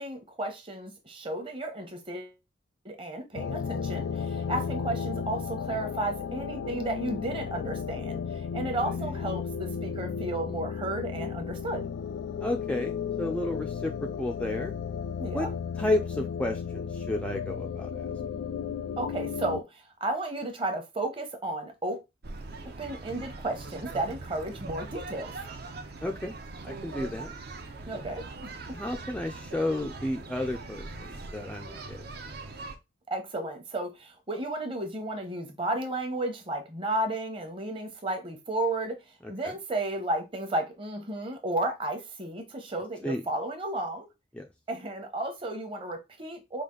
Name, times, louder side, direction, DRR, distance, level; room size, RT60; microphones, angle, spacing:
voice 1, 0.0-2.4 2.8-11.9 15.2-15.5 19.0-22.0 22.8-25.3 27.9-28.5 33.1-39.0 39.3-44.1 44.7-46.6, right 2 dB, 30° right, 0.9 m, -33 dB
sound 1, 3.3-19.6, left 6 dB, 90° left, 0.3 m, -34 dB
voice 2, 8.8-9.2 12.4-14.7 15.3-15.5 15.8-18.1 26.0-26.3 26.6-27.3 28.7-32.0 39.2-39.5 43.0-43.2 44.3-44.5, left 1 dB, 5° left, 0.3 m, -32 dB
sound 2, 22.2-32.8, right 3 dB, 55° right, 0.7 m, -41 dB
5.0 x 2.4 x 3.7 m
head